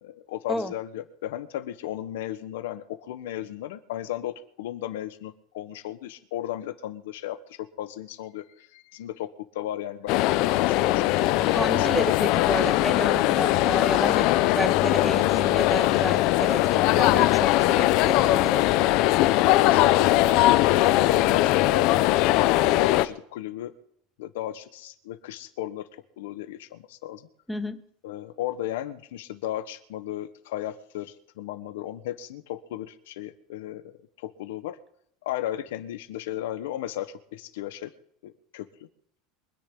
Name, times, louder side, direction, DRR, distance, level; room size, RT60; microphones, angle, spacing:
voice 1, 0.0-11.2 11.7-12.7 19.6-23.7 24.2-25.9 26.2-27.3 28.0-33.8 34.2-34.8 35.2-37.9 38.2-38.7, left 13 dB, 90° left, 11 dB, 1.4 m, -35 dB
sound 1, 10.1-23.1, left 16 dB, 45° left, 0.7 m, -21 dB
voice 2, 11.4-14.3 14.5-18.7 27.5-27.8, left 1 dB, ahead, 10 dB, 0.8 m, -31 dB
24.5 x 10.0 x 4.0 m, 0.68 s
supercardioid pair, 175°, 0 cm